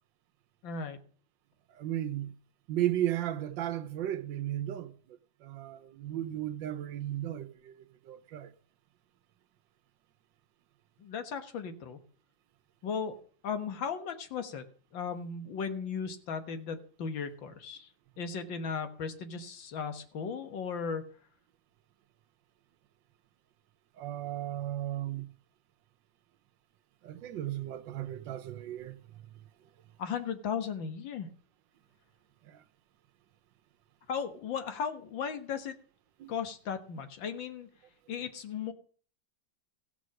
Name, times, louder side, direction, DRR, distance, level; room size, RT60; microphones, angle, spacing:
voice 1, 0.6-1.0 11.0-12.0 12.8-13.2 13.4-14.7 14.9-17.9 18.2-21.0 30.0-31.3 34.1-35.8 36.3-37.7 38.1-38.7, left 6 dB, 80° left, 2.1 m, -36 dB
voice 2, 1.7-2.3 2.7-8.5 23.9-25.3 27.0-29.2 32.4-32.6 36.2-36.3, right 12 dB, 80° right, 1.5 m, -35 dB
15.5 x 6.3 x 6.3 m
omnidirectional pair, 2.0 m